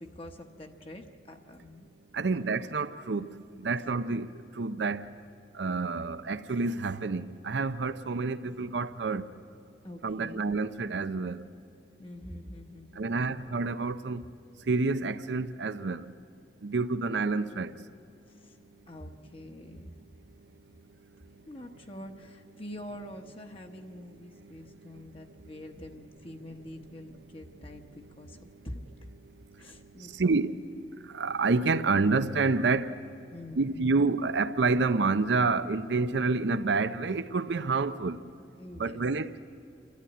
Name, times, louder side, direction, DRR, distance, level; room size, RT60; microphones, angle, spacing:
voice 1, 0.0-1.9 2.3-2.6 9.8-10.4 12.0-13.4 18.3-18.6 18.9-19.9 21.4-28.8 29.6-30.3 33.3-34.0 38.6-39.0, left 1 dB, 30° left, 1.1 m, -45 dB
voice 2, 2.1-3.2 3.6-4.3 4.6-5.1 5.6-9.2 10.0-11.4 13.0-14.2 14.7-16.0 16.6-17.7 30.2-30.5 31.1-32.9 33.6-38.2 38.8-39.3, right 3 dB, 85° right, 0.6 m, -28 dB
29.0 x 12.0 x 9.7 m
head